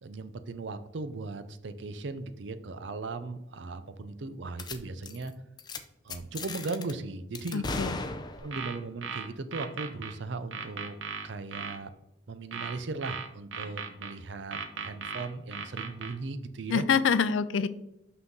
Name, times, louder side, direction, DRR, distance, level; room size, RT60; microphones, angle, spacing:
voice 1, 0.0-5.3 6.0-7.7 8.4-11.0 11.2-11.9 12.3-16.9, right 3 dB, 65° right, 11 dB, 0.6 m, -37 dB
sound 1, 4.6-4.8 5.0-5.3 5.6-5.8 6.1-6.9 7.3-8.7, left 3 dB, 20° left, 0.5 m, -36 dB
voice 2, 7.5-7.9 16.7-17.7, left 6 dB, 80° left, 14 dB, 0.4 m, -25 dB
sound 2, 8.4-10.1 10.5-11.8 12.5-14.1 14.5-16.1, right 6 dB, 90° right, 0.8 m, -37 dB
5.9 x 5.7 x 3.9 m, 0.85 s
head